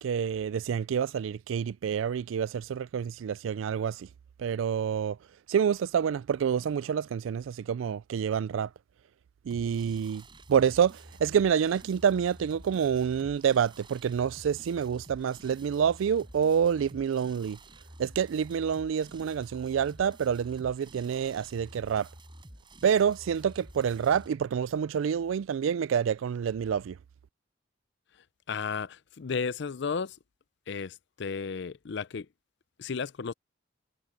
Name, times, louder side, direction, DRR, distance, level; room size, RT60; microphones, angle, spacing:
voice 1, 0.0-4.1 4.4-5.2 5.5-8.7 9.5-10.2 10.5-17.6 18.0-22.1 22.8-27.0, right 7 dB, 80° right, 0.3 m, -27 dB
sound 1, 9.5-24.3, right 1 dB, 25° right, 7.4 m, -50 dB
voice 2, 28.5-30.2 30.7-32.3 32.8-33.3, left 5 dB, 60° left, 0.5 m, -33 dB
head